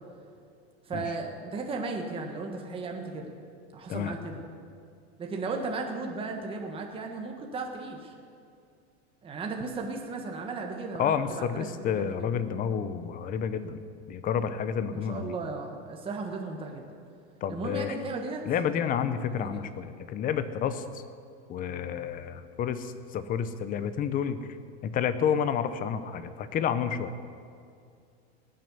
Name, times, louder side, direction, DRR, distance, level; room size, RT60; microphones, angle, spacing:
voice 1, 0.8-3.3 3.7-4.5 5.2-8.1 9.2-12.3 14.9-16.9 17.5-18.4 19.3-19.6, right 3 dB, 15° right, 2 dB, 1.4 m, -35 dB
voice 2, 11.0-13.8 14.1-15.3 17.4-18.0 18.5-21.0 21.5-24.5 24.8-27.1, left 8 dB, 25° left, 12 dB, 0.7 m, -30 dB
18.5 x 7.8 x 8.1 m, 2.4 s
supercardioid pair, 150°, 33 cm